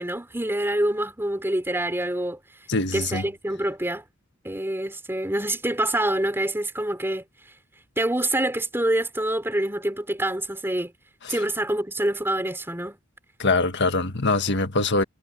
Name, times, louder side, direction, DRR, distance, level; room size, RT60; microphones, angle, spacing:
voice 1, 0.0-2.4 2.9-4.0 4.4-7.2 8.0-10.9 11.3-13.0, right 1 dB, 10° right, 3.8 m, -26 dB
voice 2, 2.7-3.2 11.2-11.3 13.4-15.0, left 3 dB, 60° left, 1.6 m, -23 dB
head